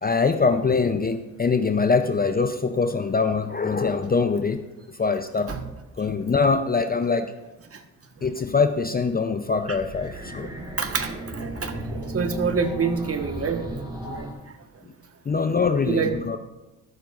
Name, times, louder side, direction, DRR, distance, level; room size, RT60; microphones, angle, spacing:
voice 1, 0.0-4.6 5.0-5.5 6.0-7.3 8.2-10.5 15.3-16.4, left 4 dB, 20° left, 8 dB, 0.6 m, -23 dB
sound 1, 9.4-14.3, right 1 dB, 10° right, 2.5 m, -35 dB
voice 2, 10.8-14.3 15.9-16.1, right 5 dB, 35° right, 6 dB, 1.4 m, -27 dB
14.5 x 12.5 x 2.5 m, 1.0 s
supercardioid pair, 65°, 41 cm